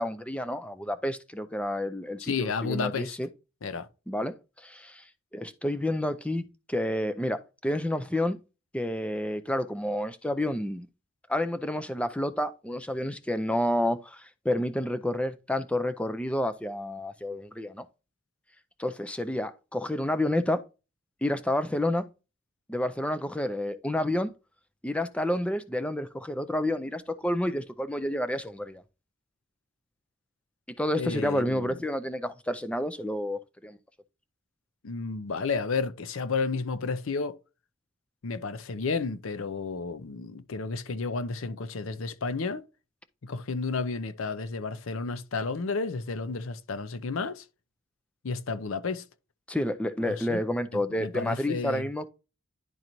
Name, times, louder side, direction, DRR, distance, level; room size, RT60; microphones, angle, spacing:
voice 1, 0.0-3.3 4.1-5.1 5.3-8.4 8.7-10.9 11.3-17.9 18.8-20.6 21.2-22.0 22.7-24.3 24.8-28.8 30.7-33.8 49.5-52.1, left 1 dB, 5° left, 0.4 m, -30 dB
voice 2, 2.2-3.2 3.6-3.9 31.0-31.8 34.8-37.4 38.2-42.6 43.2-47.4 48.2-49.0 50.0-50.4 50.7-51.9, left 4 dB, 80° left, 0.6 m, -32 dB
10.5 x 3.9 x 3.0 m
head